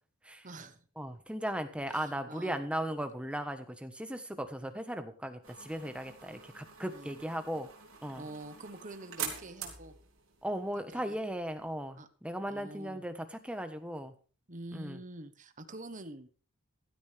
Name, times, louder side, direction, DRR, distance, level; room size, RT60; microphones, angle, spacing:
voice 1, 0.4-0.8 1.9-2.6 6.9-7.2 8.1-9.9 10.8-11.2 12.0-12.1 12.5-13.0 14.5-16.3, right 2 dB, 35° right, 10 dB, 1.2 m, -46 dB
voice 2, 1.0-7.7 8.0-8.2 10.4-14.1 14.7-15.0, right 1 dB, 5° right, 8 dB, 1.3 m, -37 dB
sound 1, 5.4-11.7, right 7 dB, 70° right, 3.4 m, -46 dB
16.0 x 12.0 x 3.5 m, 0.39 s
head